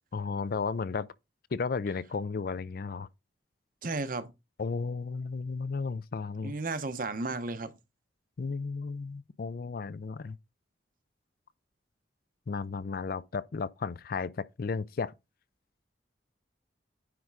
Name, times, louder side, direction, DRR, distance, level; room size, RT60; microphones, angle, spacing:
voice 1, 0.1-1.1 1.5-3.1 4.6-6.5 8.4-10.4 12.5-15.1, left 4 dB, 50° left, 0.4 m, -34 dB
voice 2, 3.8-4.3 6.4-7.7, right 3 dB, 45° right, 0.8 m, -33 dB
9.5 x 3.6 x 4.7 m
head